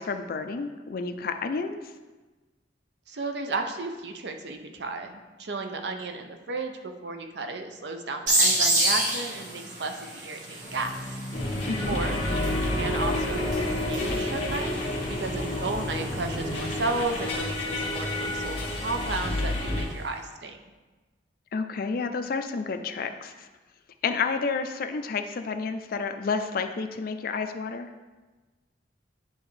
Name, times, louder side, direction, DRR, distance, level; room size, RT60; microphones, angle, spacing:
voice 1, 0.0-1.8 11.7-12.0 21.5-23.5 24.0-27.9, left 4 dB, 55° left, 7 dB, 0.4 m, -30 dB
voice 2, 3.1-10.9 11.8-20.6, right 3 dB, 70° right, 5 dB, 0.6 m, -33 dB
sound 1, 8.3-19.6, right 1 dB, 45° right, 1.4 m, -31 dB
sound 2, 10.6-17.4, equal, 10° left, 1.0 m, -39 dB
sound 3, 11.3-19.8, left 1 dB, 35° left, 1.3 m, -30 dB
10.0 x 3.5 x 3.2 m, 1.2 s
head